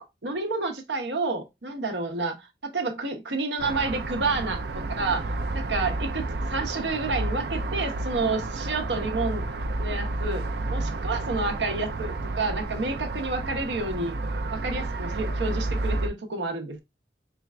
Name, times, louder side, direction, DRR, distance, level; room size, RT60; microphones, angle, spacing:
voice 1, 0.0-2.3 2.6-9.4 9.8-14.1 14.5-16.8, right 3 dB, 85° right, 0.9 m, -30 dB
sound 1, 3.6-16.1, right 2 dB, 70° right, 0.5 m, -31 dB
4.4 x 2.5 x 3.2 m
head